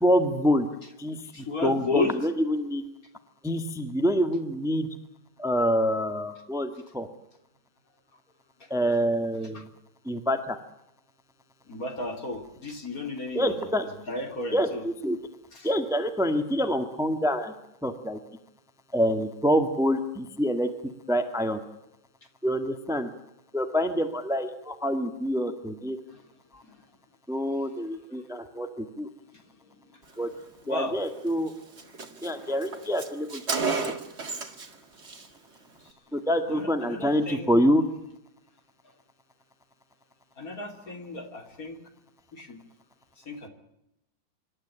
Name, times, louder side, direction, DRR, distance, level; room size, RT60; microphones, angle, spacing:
voice 1, 0.0-0.7 1.0-1.3 1.6-2.8 3.4-4.9 5.4-7.1 8.7-9.7 10.0-10.6 13.3-13.8 14.5-15.2 15.6-17.5 17.8-18.2 18.9-20.7 21.1-21.6 22.4-23.1 23.5-26.0 26.5-26.6 27.3-29.1 30.2-30.3 30.7-31.5 32.2-33.8 36.1-37.8, equal, ahead, 8 dB, 1.5 m, -26 dB
voice 2, 1.3-2.2 9.5-9.6 11.7-13.6 13.8-14.8 15.5-15.7 26.1-26.2 26.6-26.8 29.5-29.8 30.6-31.0 35.8-35.9 36.5-37.6 40.4-41.8 42.3-42.6 43.3-43.5, left 2 dB, 45° left, 5 dB, 3.6 m, -33 dB
Car, 31.1-31.2 31.5-31.6 31.8-34.7 35.0-35.3, right 4 dB, 35° right, 2.3 m, -32 dB
26.0 x 12.5 x 10.0 m, 0.85 s
omnidirectional pair, 2.1 m